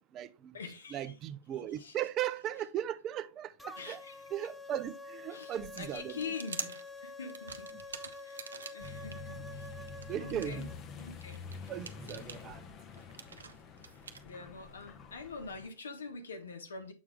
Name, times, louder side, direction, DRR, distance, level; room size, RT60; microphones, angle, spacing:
voice 1, 0.0-0.6 0.9-4.0 4.3-6.3 10.1-10.7 11.7-12.6, right 11 dB, 35° right, 0.6 m, -37 dB
voice 2, 0.5-1.1 1.8-2.0 3.8-4.2 5.3-7.7 8.2-9.7 10.2-10.7 11.0-11.4 14.2-16.9, left 5 dB, 80° left, 1.4 m, -45 dB
sound 1, 3.6-10.8, left 3 dB, 5° left, 0.7 m, -48 dB
sound 2, 5.6-9.1 9.6-14.2, right 5 dB, 80° right, 0.8 m, -46 dB
Accelerating revving vroom, 8.8-15.7, left 5 dB, 30° left, 0.8 m, -47 dB
7.3 x 4.7 x 3.5 m
hypercardioid pair, 105°, 0 cm